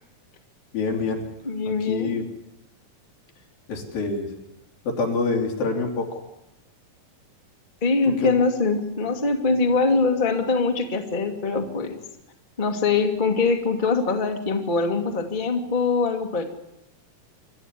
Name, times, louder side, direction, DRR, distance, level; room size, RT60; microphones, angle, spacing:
voice 1, 0.7-1.2 1.6-2.2 3.7-4.3 4.9-6.2 8.2-8.4, left 4 dB, 75° left, 2 dB, 4.8 m, -26 dB
voice 2, 1.4-2.2 7.8-12.0 12.6-16.4, left 4 dB, 20° left, 3 dB, 1.6 m, -23 dB
26.5 x 13.0 x 10.0 m, 0.87 s
omnidirectional pair, 4.2 m